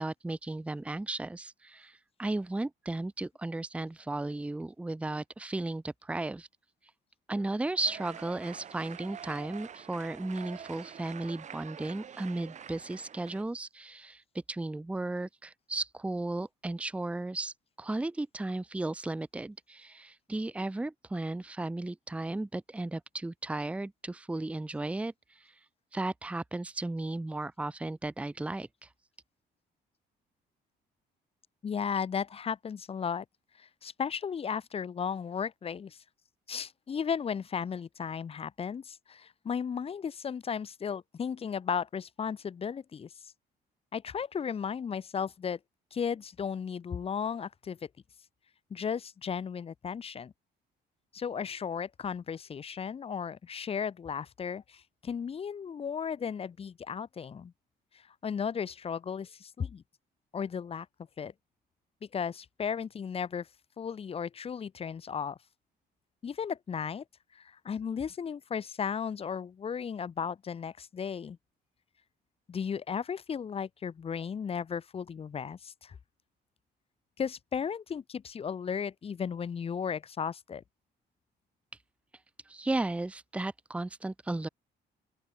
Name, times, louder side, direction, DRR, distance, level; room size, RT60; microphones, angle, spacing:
voice 1, 0.0-6.5 7.3-14.2 14.5-25.5 25.9-28.9 82.5-84.5, right 2 dB, 5° right, 0.8 m, -35 dB
sound 1, 7.8-13.4, right 8 dB, 45° right, 3.8 m, -46 dB
voice 2, 31.6-33.3 33.6-36.0 36.5-43.1 43.9-45.6 45.9-47.8 48.7-50.3 51.1-57.5 57.9-59.8 60.3-60.9 61.2-61.3 62.1-63.5 63.8-65.4 66.2-67.0 67.4-71.4 72.5-75.9 77.2-80.6, left 7 dB, 35° left, 1.9 m, -35 dB
open air
cardioid pair, 145°, 17 cm